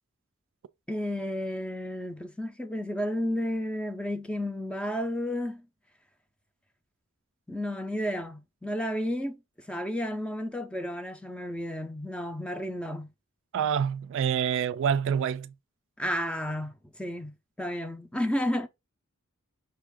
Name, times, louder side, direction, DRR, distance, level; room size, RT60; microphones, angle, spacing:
voice 1, 0.9-5.7 7.5-9.4 9.7-13.1 16.0-18.7, equal, 5° left, 0.5 m, -32 dB
voice 2, 13.5-15.5, right 8 dB, 60° right, 0.3 m, -27 dB
5.4 x 2.4 x 3.5 m
head